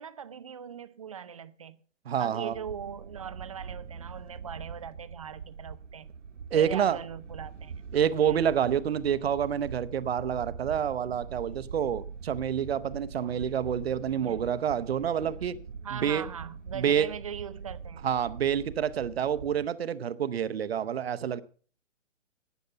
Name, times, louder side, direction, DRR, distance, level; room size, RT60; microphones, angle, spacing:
voice 1, 0.0-1.8 2.2-6.1 6.5-7.7 8.2-8.6 13.2-13.5 14.2-14.5 15.8-18.1, right 8 dB, 30° right, 0.5 m, -40 dB
voice 2, 2.1-2.6 6.5-7.0 7.9-15.6 15.9-16.2 16.7-17.1 18.0-21.4, right 8 dB, 55° right, 0.9 m, -28 dB
sound 1, 2.5-19.7, right 5 dB, 75° right, 1.4 m, -43 dB
12.5 x 9.3 x 5.7 m
hypercardioid pair, 150°, 38 cm